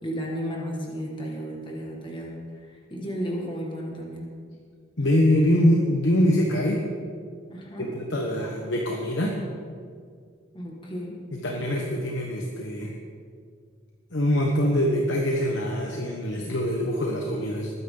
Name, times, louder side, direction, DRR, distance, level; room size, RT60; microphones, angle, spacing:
voice 1, 0.0-4.3 5.0-5.1 7.5-7.9 10.5-11.2, equal, 25° left, -2 dB, 1.9 m, -34 dB
voice 2, 5.0-6.8 7.8-9.3 11.3-12.9 14.1-17.7, left 1 dB, 60° left, 0 dB, 1.3 m, -24 dB
20.5 x 9.6 x 3.9 m, 2.1 s
head